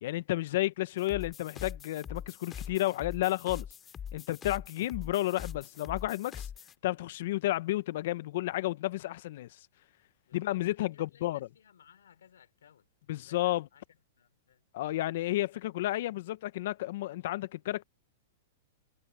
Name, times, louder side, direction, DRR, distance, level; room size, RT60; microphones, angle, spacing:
voice 1, 0.0-3.7 4.1-6.5 6.8-9.5 10.3-11.5 13.1-13.7 14.7-17.8, left 16 dB, 65° left, 1.0 m, -32 dB
sound 1, 1.0-6.7, left 8 dB, 20° left, 2.5 m, -43 dB
voice 2, 10.3-12.9 13.2-14.6, left 9 dB, 85° left, 4.1 m, -61 dB
hypercardioid pair, 130°, 0 cm